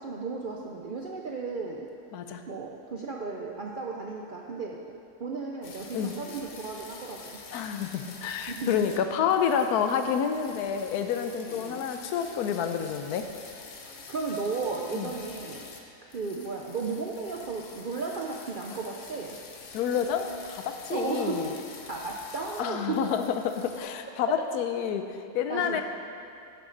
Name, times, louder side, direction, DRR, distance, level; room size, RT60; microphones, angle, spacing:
voice 1, 0.0-1.9 2.5-4.9 5.2-7.4 8.5-8.9 11.4-11.8 13.8-15.7 16.0-19.4 20.9-21.6 21.9-23.1 24.3-24.4 25.5-25.8, right 4 dB, 70° right, -1 dB, 0.4 m, -34 dB
sound 1, 5.6-9.0 9.3-15.8 16.1-22.6 22.9-23.8, left 4 dB, 55° left, 1.1 m, -47 dB
voice 2, 7.5-13.3 14.9-15.1 19.7-21.6 22.6-25.8, left 8 dB, 75° left, 7 dB, 1.1 m, -29 dB
11.0 x 8.4 x 3.9 m, 2.4 s
omnidirectional pair, 1.7 m